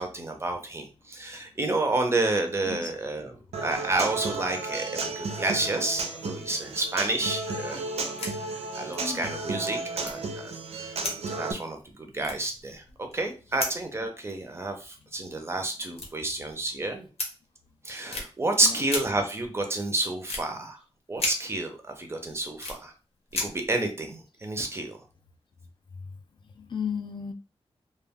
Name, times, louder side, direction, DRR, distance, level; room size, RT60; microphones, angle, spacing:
voice 1, 0.0-3.3 3.6-8.5 8.7-10.5 11.3-17.1 17.8-20.8 21.1-22.9 23.4-25.0, right 2 dB, 25° right, 0.5 m, -30 dB
Human voice / Acoustic guitar, 3.5-11.5, right 3 dB, 75° right, 0.5 m, -33 dB
sound 1, 8.0-8.3 8.6-8.7 8.9-9.0 10.0-10.6 11.0-11.9 12.2-13.3 13.6-13.9 15.0-15.1 15.9-16.7 17.2-17.3 18.1-18.3 18.9-19.0 20.3-20.4 21.2-21.3 21.9-22.8 23.3-23.7, left 2 dB, 75° left, 0.8 m, -33 dB
voice 2, 9.0-9.3 18.6-18.8 26.5-27.3, left 6 dB, 50° left, 0.4 m, -34 dB
2.2 x 2.2 x 3.4 m
wide cardioid pair, 175°, 11 cm